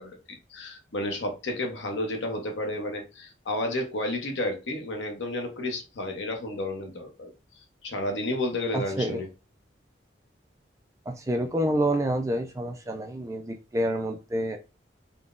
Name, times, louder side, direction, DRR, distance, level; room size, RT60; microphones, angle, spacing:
voice 1, 0.0-7.3 7.8-9.3, left 1 dB, 80° left, 0.7 m, -31 dB
voice 2, 8.7-9.2 11.1-14.6, right 1 dB, 15° right, 0.3 m, -28 dB
3.7 x 2.1 x 2.4 m
head